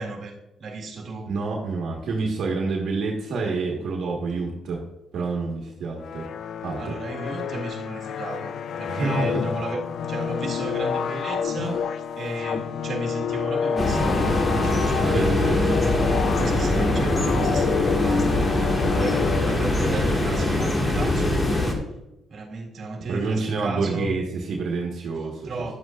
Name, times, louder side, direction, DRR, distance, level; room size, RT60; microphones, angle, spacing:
voice 1, 0.0-1.3 6.8-11.8 12.2-15.9 16.2-21.5 22.3-24.1 25.4-25.8, right 3 dB, 55° right, 0 dB, 1.8 m, -34 dB
voice 2, 1.3-4.8 5.1-6.3 6.6-7.0 8.9-9.4 11.6-11.8 15.1-15.8 23.1-25.7, right 3 dB, 70° right, -1 dB, 1.5 m, -28 dB
sound 1, 6.0-20.1, left 7 dB, 65° left, 0.4 m, -28 dB
sound 2, 13.8-21.7, left 1 dB, 25° left, 1.9 m, -23 dB
11.0 x 8.1 x 2.5 m, 0.91 s
cardioid pair, 90°, 0 cm